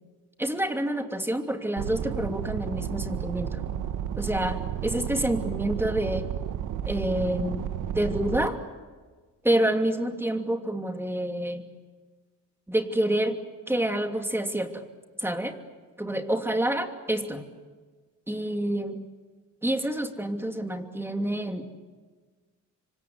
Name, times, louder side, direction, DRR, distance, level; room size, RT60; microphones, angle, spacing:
voice 1, 0.4-3.6 4.2-6.3 6.9-7.7 7.9-8.6 9.4-11.7 12.7-13.4 13.7-14.8 15.2-15.6 16.0-17.4 18.3-19.0 19.6-21.6, right 1 dB, 10° right, 5 dB, 2.8 m, -28 dB
sound 1, 1.8-8.5, right 9 dB, 90° right, 1.4 m, -32 dB
26.0 x 25.5 x 8.1 m, 1.4 s
cardioid pair, 90°, 30 cm